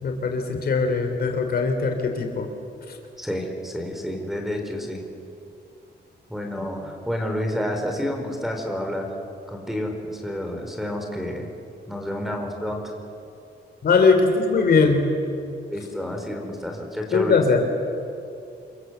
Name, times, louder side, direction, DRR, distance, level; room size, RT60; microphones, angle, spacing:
voice 1, 0.0-2.5 2.9-3.0 13.8-15.0 17.1-17.6, left 4 dB, 60° left, 5 dB, 3.3 m, -20 dB
voice 2, 3.2-5.0 6.3-9.1 9.5-11.5 11.9-12.9 15.7-17.4, equal, ahead, 3 dB, 4.4 m, -29 dB
28.5 x 23.0 x 8.1 m, 2.7 s
wide cardioid pair, 130°, 18 cm